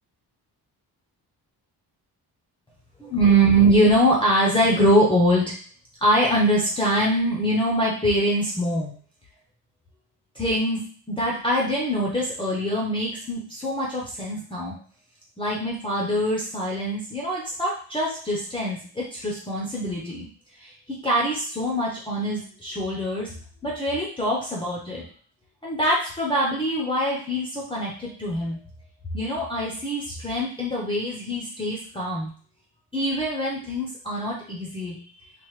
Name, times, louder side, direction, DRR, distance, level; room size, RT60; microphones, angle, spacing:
voice 1, 3.0-5.5 6.0-8.9 10.4-14.7 15.4-20.3 20.6-23.3 23.6-25.0 25.6-28.6 29.1-32.3 32.9-34.9, right 1 dB, 15° left, -4 dB, 0.5 m, -24 dB
3.2 x 2.1 x 3.0 m, 0.44 s
wide cardioid pair, 180°, 39 cm